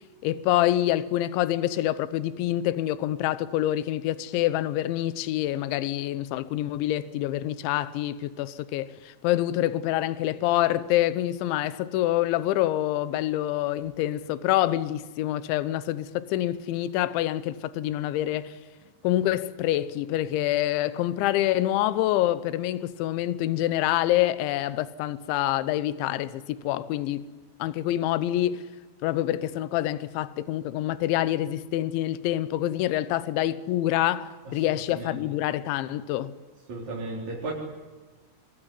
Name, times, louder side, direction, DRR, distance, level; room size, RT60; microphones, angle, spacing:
voice 1, 0.2-18.5 19.0-27.3 27.6-28.7 29.0-36.3, left 14 dB, 80° left, 3.3 m, -26 dB
voice 2, 36.7-37.5, right 2 dB, 40° right, 5.2 m, -34 dB
24.5 x 22.5 x 9.9 m
omnidirectional pair, 5.3 m